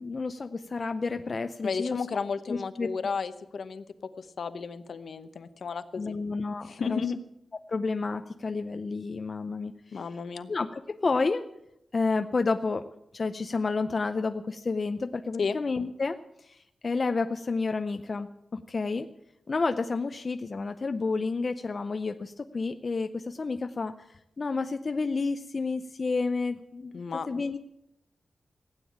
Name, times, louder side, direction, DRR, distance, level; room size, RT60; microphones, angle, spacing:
voice 1, 0.0-2.0 2.5-2.9 6.0-7.0 7.7-9.7 10.5-11.4 11.9-12.8 13.1-16.2 16.4-19.1 19.5-23.9 24.4-27.0 27.3-27.6, left 4 dB, 35° left, 8 dB, 0.6 m, -30 dB
voice 2, 1.6-3.8 4.2-6.2 6.6-7.2 9.9-10.5 15.4-15.6 26.9-27.3, left 5 dB, 60° left, 11 dB, 0.9 m, -33 dB
16.0 x 9.0 x 8.6 m, 0.81 s
wide cardioid pair, 170°, 0 cm